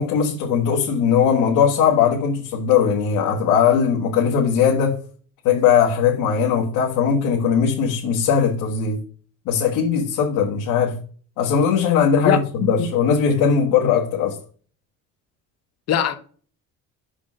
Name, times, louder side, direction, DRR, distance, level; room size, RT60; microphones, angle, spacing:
voice 1, 0.0-5.0 5.4-9.0 9.4-11.0 11.4-14.4, left 7 dB, 80° left, 1.6 m, -19 dB
voice 2, 12.2-12.9 15.9-16.2, left 8 dB, 50° left, 0.9 m, -21 dB
6.1 x 5.1 x 6.1 m
cardioid pair, 160°, 32 cm